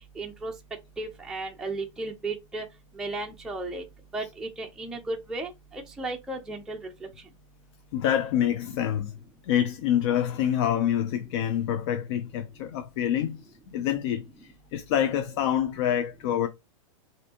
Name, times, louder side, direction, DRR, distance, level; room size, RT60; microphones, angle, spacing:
voice 1, 0.2-0.5 1.0-2.6 3.0-3.8 4.1-6.8, right 2 dB, 5° right, 0.5 m, -34 dB
voice 2, 7.9-9.1 9.4-16.5, left 10 dB, 50° left, 0.5 m, -27 dB
4.3 x 2.6 x 2.8 m
supercardioid pair, 145°, 18 cm